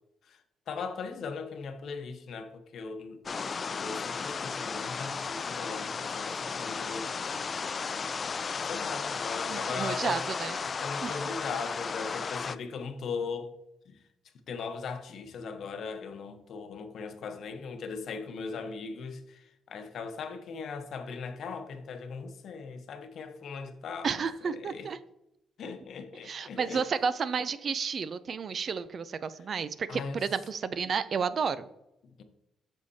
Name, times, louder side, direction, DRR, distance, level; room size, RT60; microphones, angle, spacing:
voice 1, 0.2-3.2 3.8-7.1 8.6-10.2 10.8-13.5 13.9-14.0 14.5-24.9 25.6-26.8 29.9-30.2 32.2-32.3, left 5 dB, 65° left, 0.9 m, -39 dB
sound 1, 3.3-12.6, left 5 dB, 40° left, 0.3 m, -34 dB
voice 2, 9.5-10.6 11.0-11.1 24.0-25.0 26.2-31.7, right 6 dB, 50° right, 0.4 m, -31 dB
8.1 x 6.4 x 2.7 m
cardioid pair, 90°, 0 cm